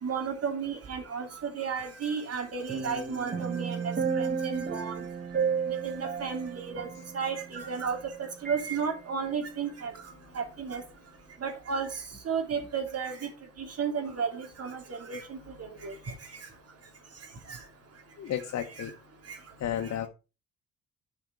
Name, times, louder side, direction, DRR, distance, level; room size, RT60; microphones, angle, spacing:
voice 1, 0.0-5.1 5.7-6.9 7.1-9.9 10.3-10.8 11.4-13.3 13.6-15.4 15.8-16.1 17.5-17.6 18.8-18.9 19.3-19.4 19.8-19.9, right 6 dB, 55° right, 4 dB, 3.2 m, -33 dB
sound 1, 2.7-8.1 8.5-8.6, right 6 dB, 30° right, 1.5 m, -33 dB
voice 2, 18.2-18.9 19.6-20.1, left 10 dB, 60° left, 5 dB, 1.2 m, -32 dB
10.5 x 5.9 x 4.9 m, 0.31 s
cardioid pair, 90°, 30 cm